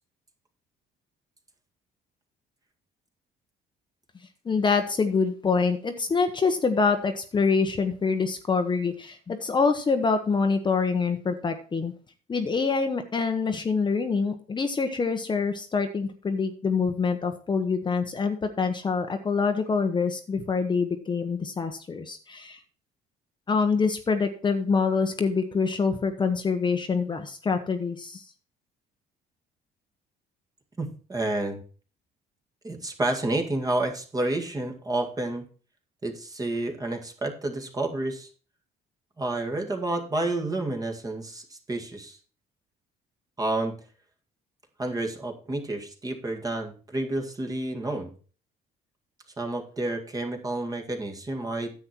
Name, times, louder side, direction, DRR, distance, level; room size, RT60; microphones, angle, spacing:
voice 1, 4.4-11.9 12.3-22.6 23.5-28.3, left 5 dB, 25° left, 6 dB, 1.0 m, -25 dB
voice 2, 30.8-31.6 32.6-35.4 36.0-38.3 39.2-42.2 43.4-43.7 44.8-48.1 49.4-51.7, right 2 dB, 20° right, 3 dB, 2.0 m, -30 dB
9.9 x 7.8 x 4.5 m, 0.39 s
cardioid pair, 110°, 17 cm